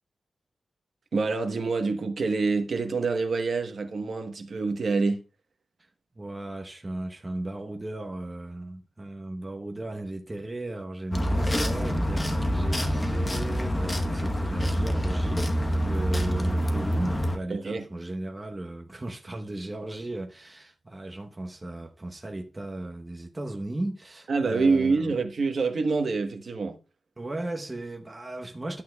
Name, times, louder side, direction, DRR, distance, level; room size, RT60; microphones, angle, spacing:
voice 1, 1.1-5.2 17.5-17.9 24.3-26.8, right 4 dB, 55° right, 1.1 m, -26 dB
voice 2, 6.1-25.2 27.2-28.8, right 2 dB, 20° right, 0.9 m, -36 dB
sound 1, 11.1-17.4, equal, 15° left, 1.0 m, -26 dB
11.5 x 8.4 x 2.3 m
wide cardioid pair, 160°, 0 cm